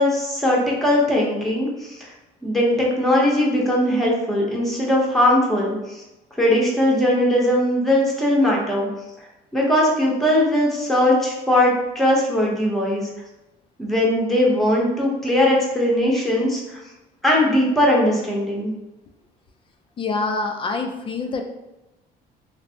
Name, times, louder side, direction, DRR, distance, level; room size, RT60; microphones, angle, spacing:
voice 1, 0.0-2.0 2.4-6.0 6.4-8.9 9.5-13.1 13.8-16.8 17.2-18.7, left 1 dB, ahead, -3 dB, 0.7 m, -19 dB
voice 2, 20.0-21.4, left 3 dB, 30° left, 4 dB, 0.3 m, -25 dB
3.1 x 2.0 x 2.6 m, 0.99 s
cardioid pair, 110°, 17 cm